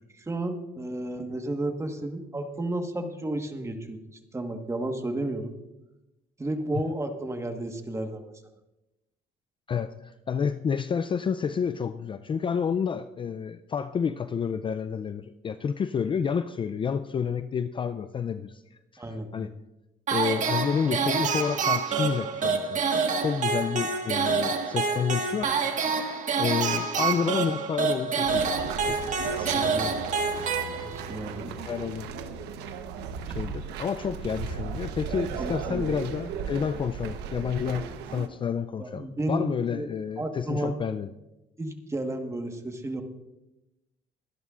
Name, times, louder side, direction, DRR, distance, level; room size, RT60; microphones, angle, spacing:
voice 1, 0.1-4.0 4.3-5.5 6.4-8.3 19.0-19.5 29.6-30.1 30.8-31.6 35.4-35.9 38.8-39.9 40.2-40.8 41.6-43.0, right 1 dB, 15° right, 6 dB, 1.4 m, -32 dB
voice 2, 9.7-18.6 18.9-19.0 19.3-19.5 20.1-25.5 26.4-29.9 31.6-32.1 33.3-41.1, left 7 dB, 30° left, 11 dB, 0.4 m, -30 dB
sound 1, 20.1-31.2, right 5 dB, 50° right, 1.6 m, -27 dB
sound 2, 28.3-38.3, right 6 dB, 90° right, 1.1 m, -36 dB
23.5 x 11.0 x 2.5 m, 0.96 s
cardioid pair, 110°, 17 cm